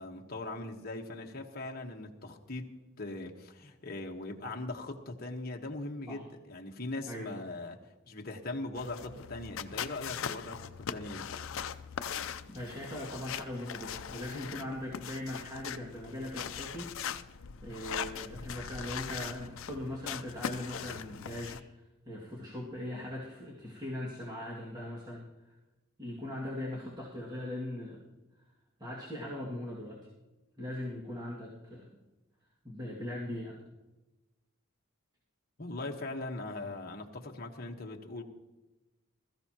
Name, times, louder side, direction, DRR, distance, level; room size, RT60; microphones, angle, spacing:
voice 1, 0.0-2.7 3.0-7.8 8.1-11.3 35.6-38.2, left 2 dB, 45° left, 2 dB, 1.3 m, -40 dB
sound 1, 8.8-21.6, left 7 dB, 75° left, 0.5 m, -40 dB
voice 2, 12.5-17.2 17.6-25.5 26.0-28.0 28.8-30.0 30.6-31.9 32.6-33.6, left 1 dB, 20° right, -6 dB, 2.1 m, -40 dB
21.0 x 14.0 x 2.9 m, 1.1 s
head